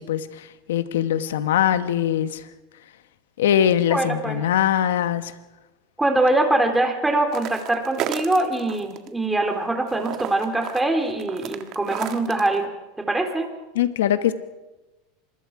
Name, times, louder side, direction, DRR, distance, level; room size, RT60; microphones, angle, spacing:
voice 1, 0.0-2.5 3.4-5.3 13.7-14.3, left 10 dB, 90° left, 11 dB, 1.3 m, -22 dB
voice 2, 3.9-4.4 6.0-12.7 13.0-13.5, right 2 dB, 10° right, 3 dB, 3.6 m, -23 dB
sound 1, 7.3-9.1 9.4-12.6, right 11 dB, 50° right, 1.7 m, -33 dB
26.0 x 21.0 x 4.8 m, 1.1 s
supercardioid pair, 120°, 0 cm